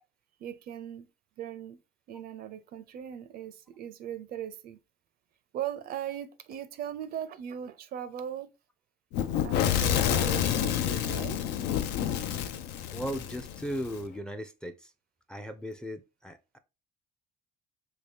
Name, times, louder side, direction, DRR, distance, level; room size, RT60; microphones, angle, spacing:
voice 1, 0.4-1.1 1.4-1.8 2.1-4.8 5.5-8.5 9.4-11.4, right 10 dB, 60° right, 0.5 m, -39 dB
Fire / Explosion, 9.1-14.0, left 10 dB, 90° left, 0.5 m, -29 dB
voice 2, 12.9-14.9 15.3-16.6, equal, 5° left, 0.4 m, -37 dB
3.1 x 2.8 x 3.4 m
cardioid pair, 110°, 17 cm